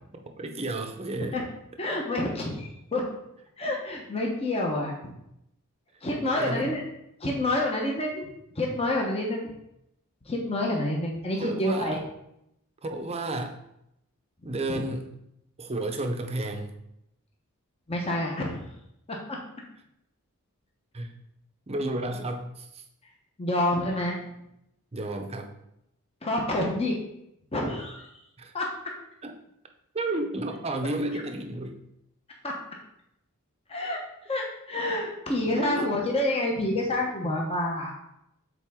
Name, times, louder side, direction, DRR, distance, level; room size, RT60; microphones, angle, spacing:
voice 1, 0.4-1.4 6.3-6.7 11.4-12.0 12.8-13.6 14.4-15.1 15.6-16.7 20.9-21.2 21.7-22.8 24.9-25.5 28.4-28.5 29.2-29.3 29.9-31.8 35.5-35.8, right 2 dB, 30° right, 5 dB, 0.7 m, -32 dB
voice 2, 1.8-3.0 3.6-4.9 6.0-6.8 7.2-8.3 8.5-9.5 10.3-12.0 14.7-14.8 17.9-18.6 23.4-24.2 26.2-27.0 27.5-28.1 28.5-28.7 32.4-32.5 33.7-34.0 34.3-37.9, left 1 dB, 25° left, -1 dB, 0.9 m, -28 dB
7.2 x 4.1 x 3.6 m, 0.81 s
head